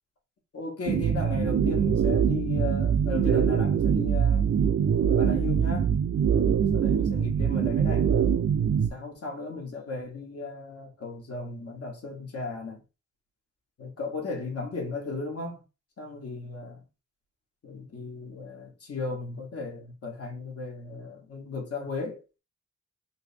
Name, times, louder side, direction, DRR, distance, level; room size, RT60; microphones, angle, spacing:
voice 1, 0.5-4.8 5.1-5.9 6.7-8.1 8.9-12.8 13.8-15.6 16.0-16.8 17.6-22.2, left 3 dB, 50° left, 1.3 m, -35 dB
sound 1, 0.9-8.9, right 8 dB, 45° right, 0.4 m, -23 dB
3.3 x 2.8 x 3.3 m
wide cardioid pair, 145°, 31 cm